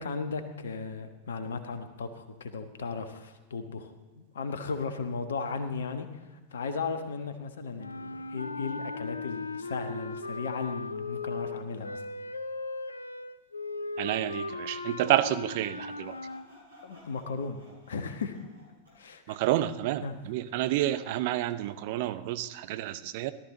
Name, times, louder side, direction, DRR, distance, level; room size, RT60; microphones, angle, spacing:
voice 1, 0.0-12.0 16.8-18.4 19.0-19.4 20.0-20.2, left 4 dB, 65° left, 8 dB, 1.2 m, -36 dB
sound 1, 7.8-16.5, left 3 dB, 80° left, 0.5 m, -37 dB
voice 2, 14.0-16.2 19.3-23.3, right 14 dB, 50° right, 12 dB, 0.6 m, -29 dB
Sawing, 15.9-19.1, left 1 dB, 80° right, 4.8 m, -56 dB
17.5 x 12.5 x 3.9 m, 1.2 s
figure-of-eight pair, 90°, 0 cm